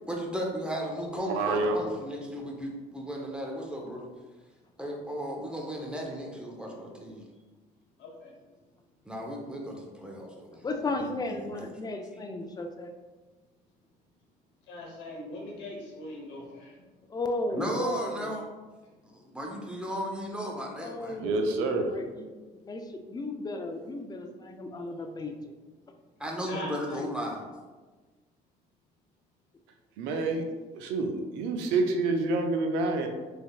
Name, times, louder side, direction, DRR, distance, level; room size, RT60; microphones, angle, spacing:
voice 1, 0.1-4.1 4.8-7.2 9.0-10.6 11.0-11.7 17.5-18.5 19.1-21.2 26.2-27.5, equal, 5° right, -1 dB, 0.8 m, -35 dB
voice 2, 1.3-1.8 21.2-21.9 30.0-30.4 30.7-33.1, right 3 dB, 80° right, 4 dB, 0.5 m, -27 dB
voice 3, 8.0-8.3 14.7-16.8 24.8-24.9 26.4-27.0, left 1 dB, 75° left, -2 dB, 1.1 m, -41 dB
voice 4, 10.6-12.9 17.1-18.3 20.8-22.3 22.6-25.6 26.5-26.6 26.9-27.1, left 2 dB, 20° left, 5 dB, 0.5 m, -35 dB
3.5 x 3.4 x 2.3 m, 1.3 s
supercardioid pair, 70°, 19 cm